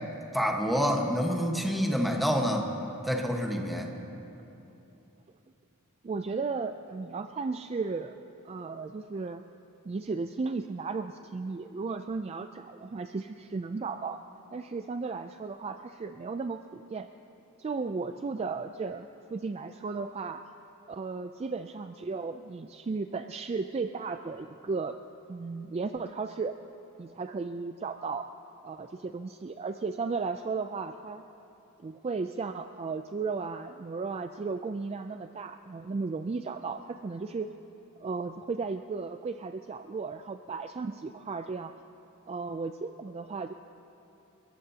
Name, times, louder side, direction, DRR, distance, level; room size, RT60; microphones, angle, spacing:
voice 1, 0.3-2.7 3.0-3.9, equal, ahead, 0 dB, 1.2 m, -27 dB
voice 2, 6.0-8.2 8.4-9.4 9.9-14.2 14.5-17.1 17.6-20.4 20.9-25.0 25.3-26.5 27.0-28.3 28.6-31.2 31.8-37.5 38.0-41.7 42.3-43.5, right 4 dB, 30° right, 8 dB, 0.3 m, -35 dB
29.5 x 14.5 x 2.8 m, 3.0 s
head